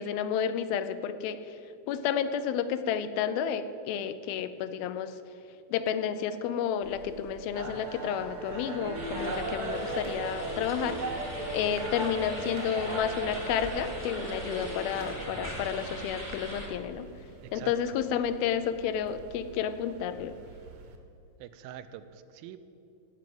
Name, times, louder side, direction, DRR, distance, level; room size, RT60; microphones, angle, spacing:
voice 1, 0.0-1.6 1.9-5.1 5.7-11.0 11.5-17.1 17.5-20.4, left 8 dB, 85° left, 11 dB, 2.5 m, -31 dB
sound 1, 6.8-21.0, right 4 dB, 70° right, 2.0 m, -51 dB
sound 2, 7.5-16.1, right 2 dB, 40° right, 1.1 m, -37 dB
sound 3, 8.9-16.7, equal, 10° right, 0.8 m, -40 dB
voice 2, 17.4-18.0 21.4-22.6, right 10 dB, 85° right, 11 dB, 2.4 m, -44 dB
16.5 x 6.0 x 7.7 m, 2.5 s
omnidirectional pair, 4.2 m